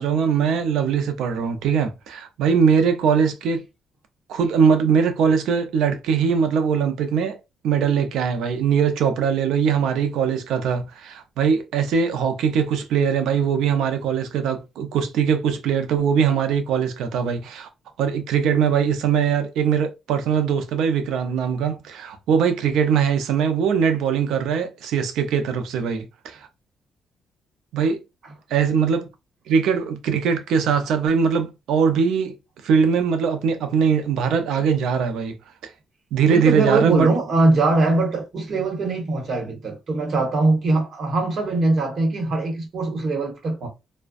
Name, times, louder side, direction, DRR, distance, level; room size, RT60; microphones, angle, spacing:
voice 1, 0.0-3.6 4.3-7.4 7.6-17.7 18.0-26.4 27.7-28.0 28.5-29.1 29.5-32.4 32.6-35.4 35.6-35.7 36.1-37.1, right 6 dB, 85° right, 0.5 m, -21 dB
voice 2, 36.3-43.7, right 2 dB, 50° right, 1.1 m, -21 dB
2.5 x 2.1 x 2.3 m
cardioid pair, 125°, 0 cm